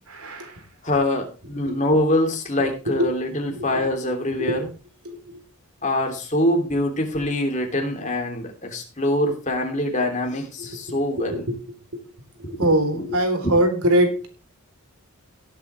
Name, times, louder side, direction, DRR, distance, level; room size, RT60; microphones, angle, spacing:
voice 1, 0.1-0.6 1.6-1.8 2.9-3.1 3.5-3.9 4.4-4.6 5.1-5.4 10.6-11.6 11.9-12.0 12.4-14.3, right 1 dB, 80° right, 5 dB, 3.8 m, -23 dB
voice 2, 0.8-4.7 5.8-11.5 12.4-12.6 12.9-13.5, left 1 dB, 35° left, 3 dB, 3.0 m, -24 dB
18.0 x 8.1 x 3.4 m, 0.32 s
head